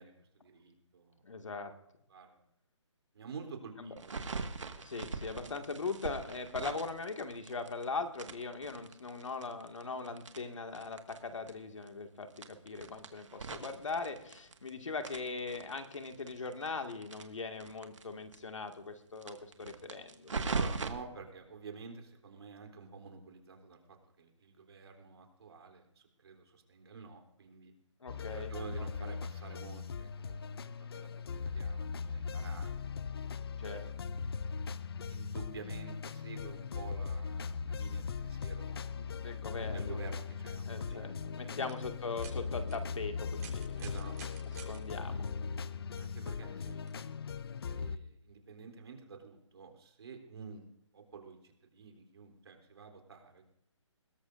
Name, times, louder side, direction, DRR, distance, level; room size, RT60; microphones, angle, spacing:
voice 1, 0.0-1.2 2.1-2.4 3.1-4.2 5.3-5.5 20.5-27.7 28.3-30.4 30.7-32.8 34.0-34.1 35.1-39.1 39.7-41.7 43.8-44.8 46.0-46.8 47.7-50.7 50.9-53.4, right 5 dB, 55° right, 3 dB, 3.5 m, -50 dB
voice 2, 1.2-1.7 3.8-4.0 4.8-20.3 28.0-28.5 29.0-29.1 33.6-33.9 39.0-40.0 40.7-43.8 44.7-45.3, left 4 dB, 75° left, 5 dB, 2.1 m, -40 dB
sound 1, 4.0-7.8 8.1-11.2 11.5-11.6 11.8-11.9 12.3-14.7 15.0-18.0 18.3-18.4 18.7-18.8 19.2-20.9, right 4 dB, 75° right, 1.8 m, -40 dB
sound 2, 28.1-48.0, left 5 dB, 50° left, 0.7 m, -39 dB
sound 3, 41.5-41.7 42.1-42.3 42.7-42.8 43.3-44.8 46.0-46.1 46.9-47.0, right 6 dB, 30° right, 4.1 m, -48 dB
21.0 x 17.5 x 2.6 m, 0.79 s
hypercardioid pair, 155°, 16 cm